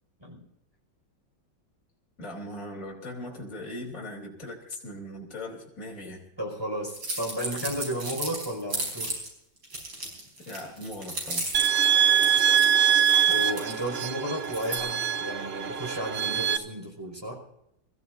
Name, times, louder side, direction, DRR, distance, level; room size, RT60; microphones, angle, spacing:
voice 1, 2.2-6.2 10.5-11.4, left 1 dB, 45° left, -2 dB, 3.5 m, -39 dB
voice 2, 6.4-9.1 13.3-17.4, equal, 10° right, 0 dB, 5.1 m, -33 dB
sound 1, 6.9-9.3 9.6-14.0 14.4-14.8, right 2 dB, 85° right, 5.7 m, -35 dB
sound 2, 11.5-16.6, right 9 dB, 70° right, 0.6 m, -23 dB
27.0 x 15.0 x 2.6 m, 0.81 s
omnidirectional pair, 2.0 m